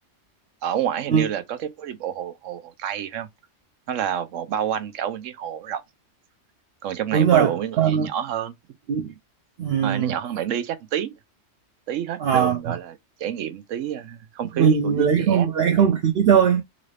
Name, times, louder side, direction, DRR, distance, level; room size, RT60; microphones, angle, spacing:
voice 1, 0.6-3.3 3.9-5.8 6.8-8.6 9.8-11.1 11.9-15.5, right 9 dB, 85° right, 1.0 m, -28 dB
voice 2, 7.1-7.5 7.8-8.1 8.9-9.1 9.6-10.1 12.2-12.6 14.6-16.6, right 7 dB, 60° right, 0.7 m, -19 dB
3.8 x 2.5 x 3.2 m
omnidirectional pair, 1.3 m